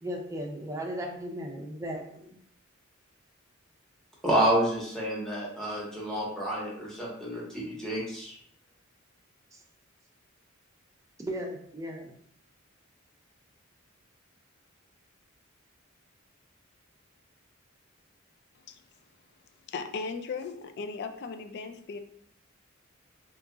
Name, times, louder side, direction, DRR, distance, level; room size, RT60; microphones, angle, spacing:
voice 1, 0.0-2.4 9.5-9.6 11.2-12.1, equal, 15° right, 0 dB, 0.4 m, -36 dB
voice 2, 4.2-8.4, right 1 dB, 5° left, -5 dB, 0.9 m, -29 dB
voice 3, 19.7-22.0, left 4 dB, 50° left, 7 dB, 0.3 m, -37 dB
2.8 x 2.4 x 3.7 m, 0.67 s
head